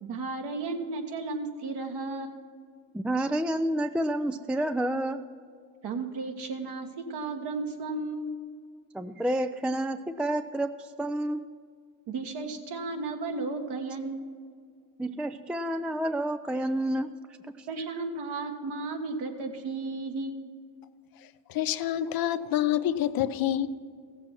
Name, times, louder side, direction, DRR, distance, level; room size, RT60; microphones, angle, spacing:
voice 1, 0.0-2.4 5.8-8.3 12.1-14.3 17.7-20.4, right 3 dB, 60° right, 4 dB, 1.8 m, -34 dB
voice 2, 2.9-5.2 8.9-11.4 15.0-17.1 17.6-17.7, right 1 dB, 5° right, 10 dB, 0.3 m, -29 dB
voice 3, 21.5-23.7, left 11 dB, 50° left, 12 dB, 0.7 m, -27 dB
15.5 x 7.5 x 6.0 m, 2.1 s
supercardioid pair, 75°, 44 cm